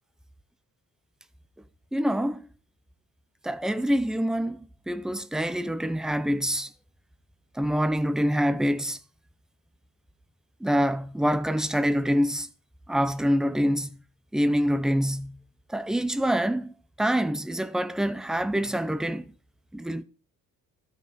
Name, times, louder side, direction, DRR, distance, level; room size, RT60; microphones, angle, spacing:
voice 1, 1.9-2.4 3.4-4.6 4.9-6.7 7.6-9.0 10.6-12.5 12.9-13.9 14.3-15.3 15.7-16.7 17.0-19.3 19.7-20.0, equal, ahead, 0.4 m, -25 dB
12.5 x 5.8 x 4.1 m
wide cardioid pair, 155°, 35 cm